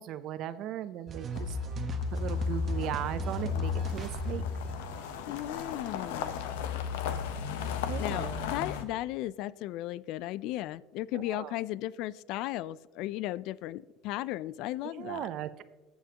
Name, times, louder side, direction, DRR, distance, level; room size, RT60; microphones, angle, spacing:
voice 1, 0.0-1.6 2.1-4.4 7.9-8.7 11.1-11.5 15.0-15.6, right 11 dB, 60° right, 13 dB, 0.6 m, -37 dB
sound 1, 1.1-6.0, right 5 dB, 40° right, 0.9 m, -39 dB
sound 2, 1.3-8.8, left 7 dB, 85° left, 0.9 m, -34 dB
voice 2, 5.3-6.3 7.8-15.3, left 15 dB, 65° left, 20 dB, 0.3 m, -36 dB
20.5 x 7.1 x 2.9 m, 1.2 s
supercardioid pair, 105°, 0 cm